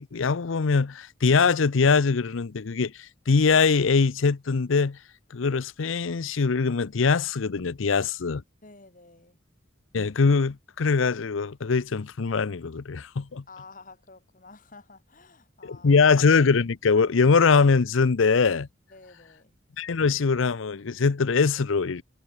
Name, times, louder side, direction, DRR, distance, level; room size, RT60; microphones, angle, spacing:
voice 1, 0.0-2.9 3.3-5.0 5.3-8.4 9.9-13.4 15.6-18.7 19.8-22.0, left 4 dB, 80° left, 0.6 m, -22 dB
voice 2, 8.6-9.4 13.5-16.1 18.9-19.5, left 3 dB, 40° left, 3.0 m, -50 dB
head